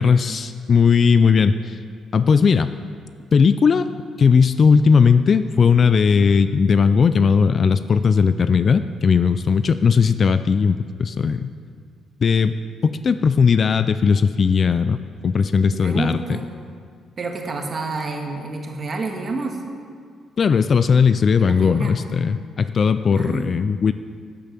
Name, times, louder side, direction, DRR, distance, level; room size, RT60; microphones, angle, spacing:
voice 1, 0.0-1.8 2.1-2.7 3.3-3.9 4.2-11.5 12.2-12.6 12.8-15.0 15.2-16.2 20.4-23.9, left 5 dB, 35° left, 12 dB, 0.4 m, -17 dB
voice 2, 15.7-16.4 17.2-19.6 21.4-21.9 23.1-23.5, right 3 dB, 30° right, 3 dB, 1.7 m, -29 dB
12.5 x 8.7 x 7.5 m, 2.1 s
cardioid pair, 150°, 0 cm